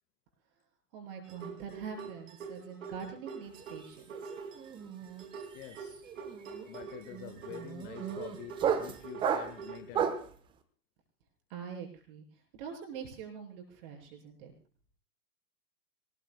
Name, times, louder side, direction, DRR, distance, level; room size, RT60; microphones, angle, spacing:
voice 1, 0.9-4.1 11.5-12.2 12.5-14.5, right 7 dB, 35° right, 2 dB, 7.0 m, -44 dB
sound 1, 1.3-9.8, right 5 dB, 50° right, 2.8 m, -46 dB
sound 2, 3.5-3.9 4.1-10.3, right 8 dB, 10° right, 0.9 m, -34 dB
voice 2, 5.5-6.0 6.7-10.2, left 13 dB, 15° left, 8 dB, 0.9 m, -47 dB
26.5 x 20.0 x 2.3 m, 0.39 s
figure-of-eight pair, 115°, 48 cm